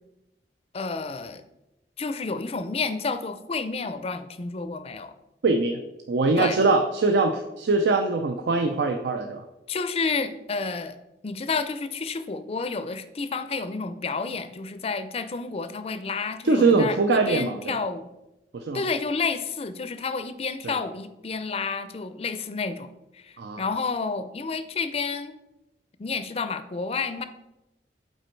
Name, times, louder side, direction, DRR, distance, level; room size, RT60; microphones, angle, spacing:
voice 1, 0.7-1.4 2.0-5.1 6.4-6.6 9.7-11.0 11.2-18.1 18.7-22.9 23.6-25.3 26.0-27.2, left 4 dB, 35° left, 11 dB, 0.4 m, -30 dB
voice 2, 5.4-5.8 6.1-9.5 16.4-17.8 18.5-18.9 20.6-20.8 23.4-23.6, right 3 dB, 75° right, 5 dB, 0.5 m, -22 dB
8.0 x 4.3 x 4.5 m, 0.95 s
head